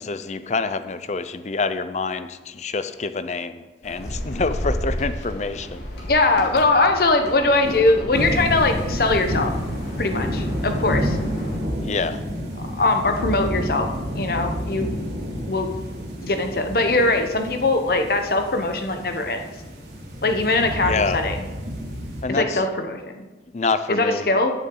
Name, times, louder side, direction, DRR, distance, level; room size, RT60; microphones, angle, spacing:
voice 1, 0.0-5.9 11.8-12.2 20.8-21.2 22.2-22.6 23.5-24.3, left 4 dB, 40° left, 12 dB, 0.5 m, -26 dB
sound 1, 3.8-11.6, equal, 70° left, 2.8 m, -33 dB
voice 2, 6.1-9.5 10.0-11.2 12.8-13.9 14.2-15.0 15.5-15.7 16.2-19.4 20.2-21.4 22.3-23.2 23.9-24.5, left 2 dB, 55° left, 6 dB, 0.9 m, -21 dB
sound 2, 8.1-22.2, equal, 75° right, 2.7 m, -29 dB
14.0 x 7.1 x 3.8 m, 1.2 s
head